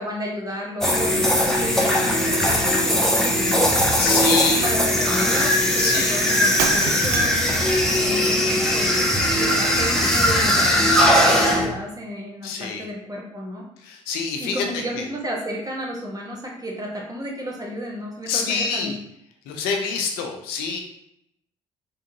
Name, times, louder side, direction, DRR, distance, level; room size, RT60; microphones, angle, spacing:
voice 1, 0.0-3.7 4.0-7.4 7.9-8.9 9.3-13.7 14.4-19.0, equal, 20° right, -1 dB, 1.3 m, -32 dB
sound 1, 0.8-11.7, equal, 5° left, 1.0 m, -19 dB
voice 2, 4.0-4.7 5.8-6.2 12.4-12.9 13.8-14.6 14.9-15.0 18.3-19.0 19.5-20.8, left 5 dB, 70° left, 3 dB, 0.7 m, -26 dB
Shatter, 6.6-7.6, right 8 dB, 65° right, 0.4 m, -27 dB
3.7 x 3.4 x 2.8 m, 0.76 s
hypercardioid pair, 50°, 17 cm